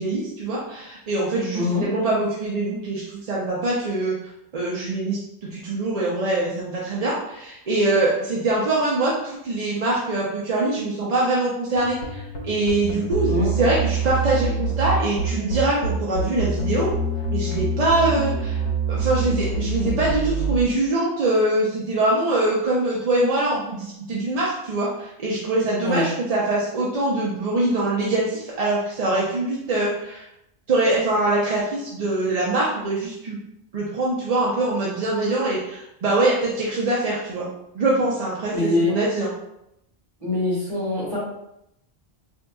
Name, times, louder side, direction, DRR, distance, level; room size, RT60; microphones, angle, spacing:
voice 1, 0.0-4.1 4.5-5.2 5.5-16.9 17.3-18.6 18.9-30.2 30.7-33.4 33.7-37.5 37.7-39.3, right 2 dB, 45° right, -5 dB, 0.5 m, -23 dB
voice 2, 1.5-1.8 13.3-13.7 25.8-26.1 38.5-39.0 40.2-41.2, left 2 dB, 30° right, -8 dB, 1.5 m, -23 dB
sound 1, 11.8-20.6, right 3 dB, 80° left, 1.0 m, -25 dB
3.8 x 2.7 x 2.3 m, 0.83 s
omnidirectional pair, 1.1 m